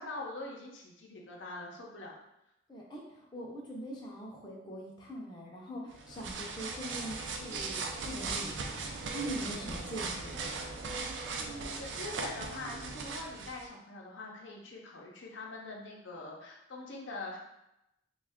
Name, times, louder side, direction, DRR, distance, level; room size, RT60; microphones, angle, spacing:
voice 1, 0.0-2.1 11.4-17.4, left 2 dB, 85° left, -1 dB, 0.7 m, -43 dB
voice 2, 2.7-8.8 9.1-10.4, right 1 dB, 25° left, -3 dB, 0.5 m, -42 dB
sound 1, 5.9-13.7, right 4 dB, 80° right, 0.4 m, -38 dB
3.1 x 2.3 x 3.5 m, 0.86 s
head